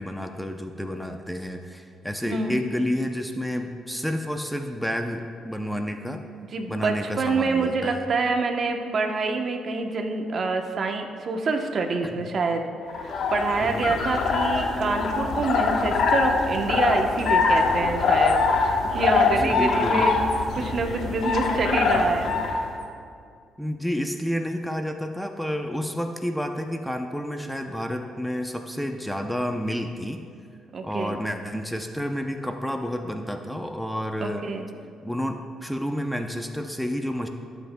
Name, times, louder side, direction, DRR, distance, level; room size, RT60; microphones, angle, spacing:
voice 1, 0.0-6.2 6.7-8.1 12.0-12.3 13.6-13.9 19.4-20.1 20.6-20.7 23.6-30.2 30.8-34.5 35.0-37.3, equal, ahead, 5 dB, 0.6 m, -30 dB
voice 2, 2.3-2.6 6.5-12.7 12.9-18.4 18.6-20.1 20.6-22.4 30.7-31.2 34.2-34.6, right 3 dB, 50° right, 4 dB, 0.9 m, -26 dB
sound 1, 12.9-22.6, left 4 dB, 70° left, 1.1 m, -23 dB
18.0 x 8.0 x 2.3 m, 2.3 s
cardioid pair, 90°, 0 cm